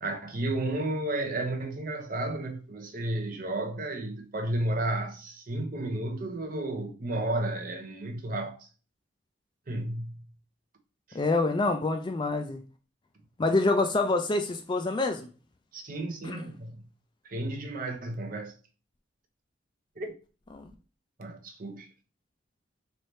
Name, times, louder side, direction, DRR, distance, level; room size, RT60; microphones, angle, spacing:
voice 1, 0.0-8.7 9.7-10.3 11.1-11.2 15.7-16.8 17.2-18.5 20.0-20.1 21.2-21.9, right 1 dB, 45° right, 0.6 m, -32 dB
voice 2, 11.1-12.6 13.4-15.3 16.2-16.5 20.5-20.7, left 2 dB, 25° left, 0.3 m, -26 dB
3.3 x 2.7 x 4.2 m
head